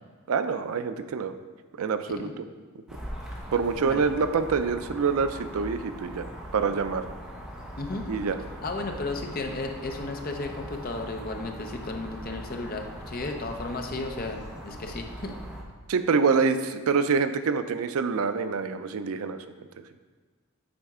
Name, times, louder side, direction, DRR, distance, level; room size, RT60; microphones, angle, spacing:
voice 1, 0.3-1.3 1.8-2.4 3.5-6.3 6.5-7.0 8.1-8.4 15.9-19.4, right 5 dB, 75° right, 10 dB, 0.4 m, -26 dB
Distant-Traffic-Woodland-Birds-and-Jet-Airliner, 2.9-15.6, equal, ahead, 0.8 m, -41 dB
voice 2, 7.8-8.1 8.6-15.3, left 2 dB, 40° left, 3 dB, 0.7 m, -34 dB
8.7 x 4.3 x 3.6 m, 1.5 s
head